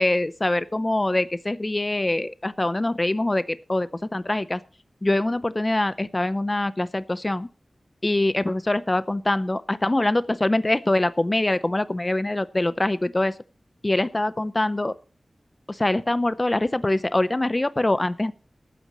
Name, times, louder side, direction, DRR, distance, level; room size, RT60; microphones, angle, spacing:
voice 1, 0.0-4.6 5.0-7.5 8.0-13.3 13.8-14.9 15.7-18.3, left 1 dB, 30° left, 14 dB, 0.6 m, -24 dB
20.0 x 9.3 x 3.0 m, 0.37 s
wide cardioid pair, 65°, 0 cm